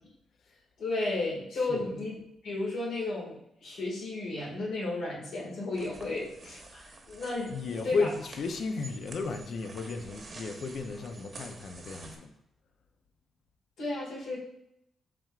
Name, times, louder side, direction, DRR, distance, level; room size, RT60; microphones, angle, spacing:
voice 1, 0.8-2.2 2.4-7.6 7.8-8.1 13.8-14.4, left 2 dB, 80° left, -5 dB, 1.8 m, -33 dB
voice 2, 1.5-1.9 7.5-12.3, left 4 dB, 65° left, 6 dB, 0.5 m, -34 dB
sound 1, 5.7-12.2, right 2 dB, 45° right, 0.9 m, -49 dB
6.0 x 3.6 x 2.4 m, 0.78 s
supercardioid pair, 60°, 0 cm